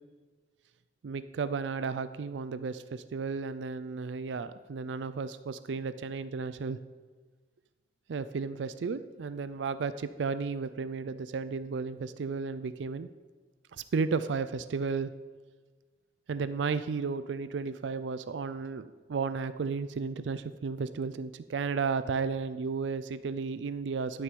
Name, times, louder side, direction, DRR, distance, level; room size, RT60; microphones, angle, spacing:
voice 1, 1.0-6.8 8.1-13.1 13.7-15.1 16.3-24.2, right 5 dB, 80° right, 13 dB, 0.4 m, -33 dB
11.0 x 6.5 x 5.2 m, 1.4 s
head